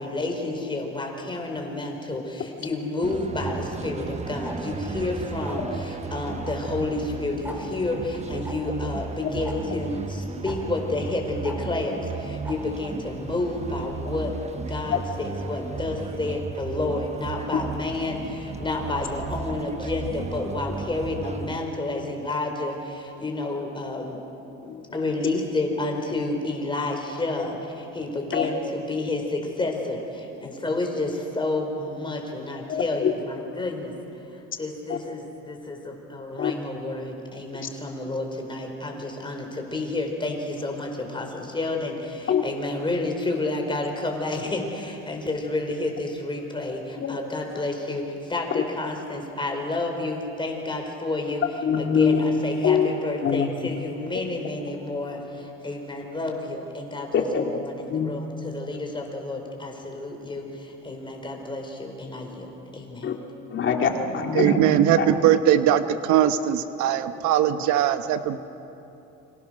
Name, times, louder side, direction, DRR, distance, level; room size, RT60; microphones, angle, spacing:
voice 1, 0.0-14.3 14.7-24.2 24.9-33.9 34.3-51.4 51.7-63.1, left 2 dB, 15° left, 2 dB, 4.9 m, -30 dB
sound 1, 3.0-21.6, right 4 dB, 20° right, 1.2 m, -35 dB
Tick-tock, 3.4-3.6 4.4-4.7 5.4-5.7 6.4-6.6 6.8-6.9 7.4-7.6 8.4-8.5 9.4-9.6 10.4-10.6 11.4-11.6 12.4-12.6, equal, 5° right, 4.6 m, -37 dB
voice 2, 32.7-33.1 34.9-35.0 36.4-36.5 37.5-37.7 42.3-42.4 47.0-47.2 48.5-48.6 51.6-52.9 53.2-53.5 57.1-58.1 63.0-63.2 63.5-65.1, left 6 dB, 40° left, 3 dB, 2.4 m, -24 dB
voice 3, 64.3-68.4, right 10 dB, 75° right, 10 dB, 1.3 m, -20 dB
29.5 x 25.5 x 6.6 m, 2.9 s
cardioid pair, 125°, 29 cm